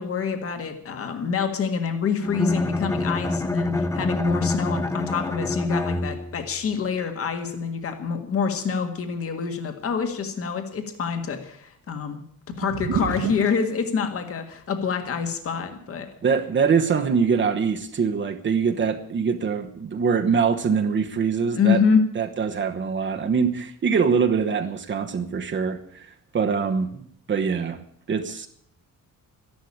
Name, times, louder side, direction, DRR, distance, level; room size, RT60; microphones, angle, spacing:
voice 1, 0.0-12.2 12.6-16.1 21.5-22.1, left 6 dB, 45° left, 6 dB, 1.8 m, -26 dB
Bowed string instrument, 2.2-6.5, left 2 dB, 10° left, 0.6 m, -26 dB
sound 1, 12.5-13.6 14.7-14.8 15.6-16.1, right 8 dB, 70° right, 1.6 m, -30 dB
voice 2, 16.2-21.8 22.1-28.5, right 6 dB, 35° right, 5 dB, 1.1 m, -24 dB
14.0 x 11.5 x 8.6 m, 0.64 s
cardioid pair, 175°, 33 cm